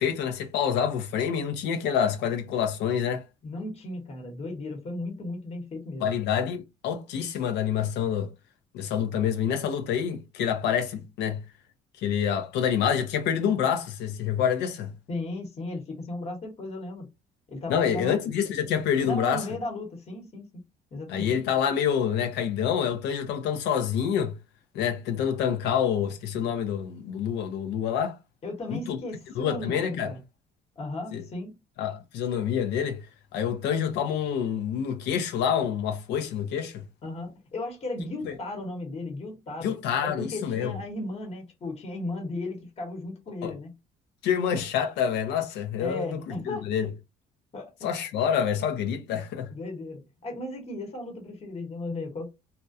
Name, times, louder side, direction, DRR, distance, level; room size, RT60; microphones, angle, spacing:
voice 1, 0.0-3.2 6.0-8.3 8.7-11.4 12.0-14.9 17.7-19.4 21.1-24.3 24.7-28.2 28.7-29.0 29.4-30.1 31.1-31.2 31.8-33.0 33.3-36.8 38.2-38.4 39.6-40.8 43.4-43.5 44.2-46.2 46.5-46.9 47.8-49.5, left 8 dB, 85° left, 0.5 m, -27 dB
voice 2, 3.4-6.1 15.1-17.1 17.5-18.2 19.0-20.6 20.9-21.3 28.4-30.2 30.8-31.5 37.0-39.7 40.0-43.7 45.8-46.6 47.5-47.9 49.5-52.3, left 2 dB, 40° left, 1.0 m, -35 dB
2.3 x 2.1 x 2.5 m
cardioid pair, 110°, 17 cm